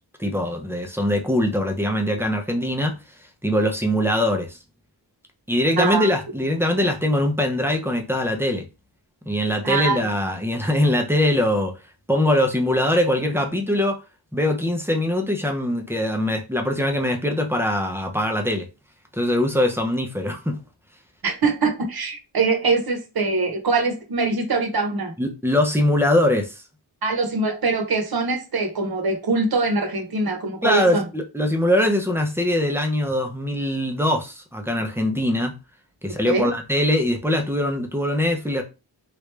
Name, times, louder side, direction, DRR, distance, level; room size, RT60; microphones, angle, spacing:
voice 1, 0.2-3.0 3.4-4.6 5.5-8.7 9.3-11.7 12.1-14.0 14.3-18.7 19.1-20.6 25.2-26.6 30.6-35.5 36.0-38.6, left 1 dB, 5° right, 0.6 m, -22 dB
voice 2, 5.8-6.1 9.6-10.1 21.2-25.1 27.0-31.0 36.3-36.5, right 3 dB, 50° right, 1.0 m, -23 dB
3.1 x 2.5 x 3.2 m
wide cardioid pair, 120°, 47 cm